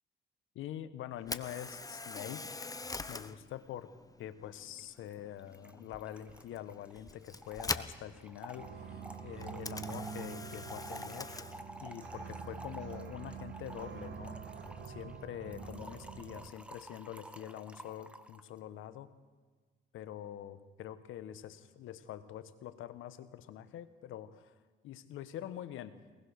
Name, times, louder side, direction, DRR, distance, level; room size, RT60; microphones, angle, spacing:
voice 1, 0.5-2.4 3.1-3.9 4.2-11.3 11.8-14.4 14.8-19.2 19.9-24.5 24.8-25.9, left 11 dB, 85° left, 12 dB, 1.2 m, -45 dB
Camera, 1.2-15.2, left 3 dB, 20° left, 1.0 m, -46 dB
Trickle dribble / Fill (with liquid), 4.8-4.9 5.1-5.2 5.4-18.5, right 1 dB, 5° right, 1.3 m, -51 dB
sound 1, 8.6-16.5, right 6 dB, 65° right, 1.9 m, -46 dB
24.0 x 19.5 x 6.6 m, 1.4 s
cardioid pair, 90°, 20 cm